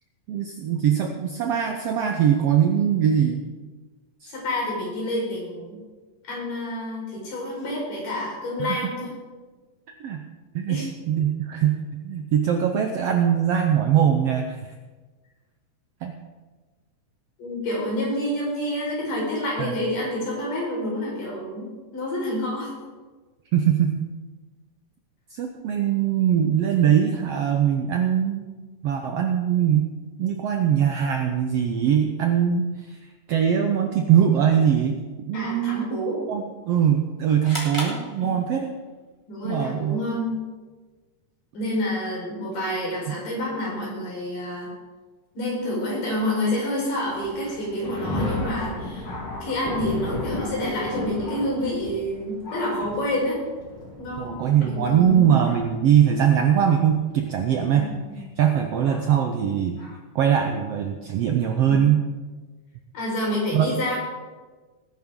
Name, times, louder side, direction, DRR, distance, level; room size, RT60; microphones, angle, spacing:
voice 1, 0.3-3.5 4.2-4.3 8.6-8.8 9.9-10.3 10.5-14.6 16.0-16.2 19.6-19.7 23.5-24.0 25.3-28.5 28.8-29.9 30.2-33.0 33.3-35.0 35.3-35.8 36.3-38.7 39.4-40.0 54.2-57.9 58.4-59.8 60.1-62.0 63.5-63.7, right 9 dB, 75° right, 5 dB, 1.4 m, -21 dB
voice 2, 4.3-5.8 6.3-9.1 10.7-10.9 17.4-22.7 35.3-36.2 38.2-38.4 39.3-40.3 41.5-44.7 45.3-49.1 49.4-53.4 54.0-55.3 57.7-58.2 61.7-61.9 62.9-64.0, left 1 dB, 80° left, -4 dB, 6.4 m, -28 dB
sound 1, 37.4-38.9, equal, 10° left, 2.4 m, -34 dB
Thunder, 47.1-57.0 57.7-57.8 58.9-59.0 59.8-59.9, left 2 dB, 45° left, 3.2 m, -34 dB
18.5 x 10.5 x 3.8 m, 1.3 s
omnidirectional pair, 3.7 m